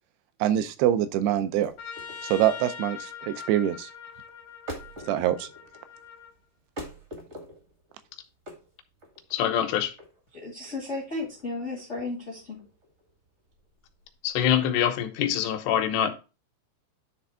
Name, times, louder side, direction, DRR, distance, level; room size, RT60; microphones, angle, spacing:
voice 1, 0.4-1.7 2.2-3.9 5.1-5.5, right 11 dB, 85° right, 2.6 m, -24 dB
sound 1, 1.4-14.4, equal, 45° right, 0.8 m, -45 dB
Trumpet, 1.8-6.3, left 7 dB, 70° left, 1.6 m, -42 dB
voice 2, 9.3-9.9 14.2-16.1, left 10 dB, 90° left, 3.1 m, -24 dB
voice 3, 10.3-12.6, left 2 dB, 55° left, 0.7 m, -34 dB
10.0 x 3.4 x 4.5 m
omnidirectional pair, 4.7 m